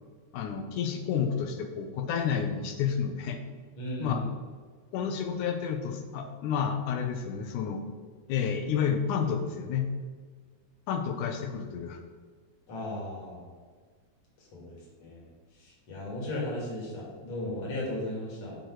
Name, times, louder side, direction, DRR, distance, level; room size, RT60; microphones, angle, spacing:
voice 1, 0.3-3.4 4.0-4.2 4.9-7.8 8.3-9.9 10.9-12.0, left 7 dB, 80° left, 5 dB, 2.3 m, -30 dB
voice 2, 3.8-4.3 12.7-13.5 14.4-15.3 15.6-18.6, left 1 dB, 45° left, -4 dB, 3.0 m, -36 dB
7.0 x 6.2 x 4.6 m, 1.6 s
omnidirectional pair, 3.5 m